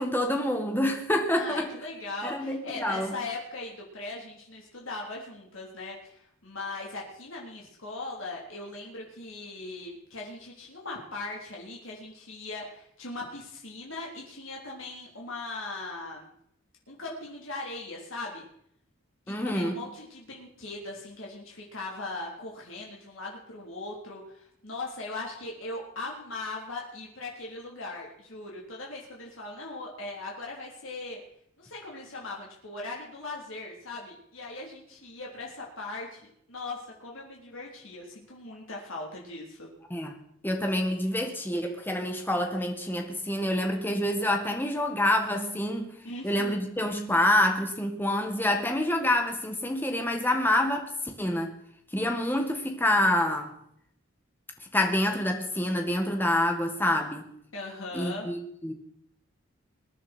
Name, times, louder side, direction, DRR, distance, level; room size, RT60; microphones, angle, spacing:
voice 1, 0.0-1.7 2.2-3.2 19.3-19.8 39.9-40.1 40.4-45.9 46.2-51.5 51.9-53.5 54.7-57.3 57.9-58.7, left 1 dB, 10° left, 4 dB, 1.7 m, -27 dB
voice 2, 1.3-16.3 16.9-18.4 19.3-31.2 31.6-36.2 36.5-39.7 46.0-46.7 57.5-58.3, left 2 dB, 60° left, -2 dB, 3.6 m, -39 dB
21.5 x 10.0 x 4.5 m, 0.70 s
head